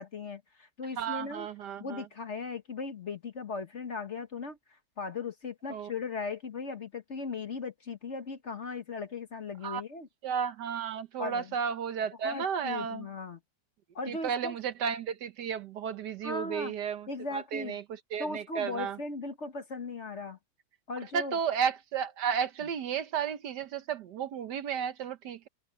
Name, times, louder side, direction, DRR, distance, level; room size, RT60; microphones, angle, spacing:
voice 1, 0.0-1.5 1.8-4.6 5.0-10.1 11.2-11.5 12.2-13.4 13.9-14.6 16.2-16.7 17.1-17.8 18.2-20.4 20.9-21.4, left 4 dB, 40° left, 1.4 m, -38 dB
voice 2, 1.0-2.0 5.7-5.9 9.6-9.8 10.2-13.1 14.1-17.8 18.1-19.0 21.1-25.5, right 7 dB, 65° right, 1.4 m, -33 dB
omnidirectional pair, 2.1 m